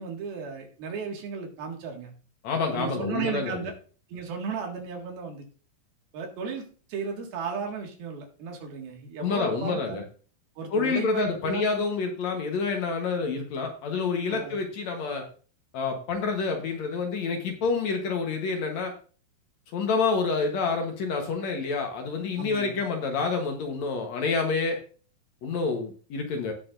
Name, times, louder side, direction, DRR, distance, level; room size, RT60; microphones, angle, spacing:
voice 1, 0.0-2.1 2.7-3.7 4.1-5.5 6.1-6.6 6.9-10.0 10.6-11.6 14.3-14.6 22.4-22.8, right 5 dB, 85° right, 2 dB, 3.8 m, -35 dB
voice 2, 2.4-3.7 9.2-10.0 10.7-15.3 15.7-18.9 19.7-24.8 25.4-26.5, left 4 dB, 60° left, 3 dB, 2.2 m, -28 dB
17.5 x 6.7 x 2.6 m, 0.39 s
omnidirectional pair, 4.2 m